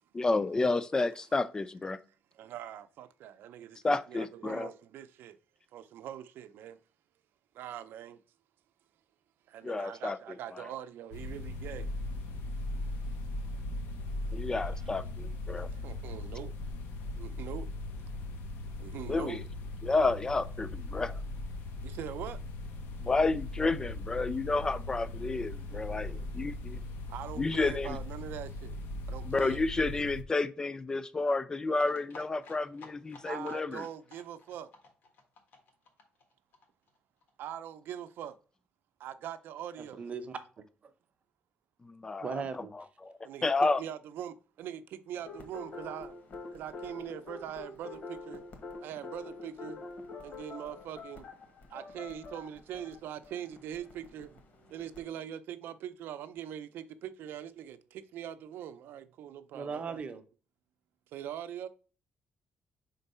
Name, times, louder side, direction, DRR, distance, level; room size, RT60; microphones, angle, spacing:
voice 1, 0.1-2.0 3.8-4.7 9.6-10.7 14.3-15.7 19.1-19.4 19.8-21.2 23.0-26.8 27.4-28.0 29.2-33.9 41.8-42.4 42.7-43.1 43.4-43.8, left 3 dB, 20° left, 0.4 m, -31 dB
voice 2, 2.3-3.8 4.1-5.4 5.7-6.8 7.5-8.2 9.5-11.9 14.5-14.6 15.7-16.5 17.2-17.7 18.8-19.4 21.8-22.4 25.7-25.8 26.1-26.3 27.1-28.8 29.1-29.6 33.2-34.7 37.4-38.4 39.0-40.0 43.2-43.5 43.8-46.1 46.5-48.4 48.8-49.8 50.2-51.3 51.7-54.4 54.7-60.0 61.1-61.7, right 10 dB, 85° right, 0.5 m, -42 dB
sound 1, 11.1-30.2, left 2 dB, 90° left, 0.8 m, -39 dB
sound 2, 31.7-37.3 37.6-37.7 37.9-38.0 38.2-38.3, left 3 dB, 75° left, 1.5 m, -53 dB
voice 3, 39.8-40.4 42.2-42.7 59.5-60.2, right 5 dB, 40° right, 0.7 m, -37 dB
sound 3, 45.2-55.1, left 3 dB, 55° left, 1.4 m, -46 dB
4.4 x 3.9 x 5.4 m
cardioid pair, 135°, 4 cm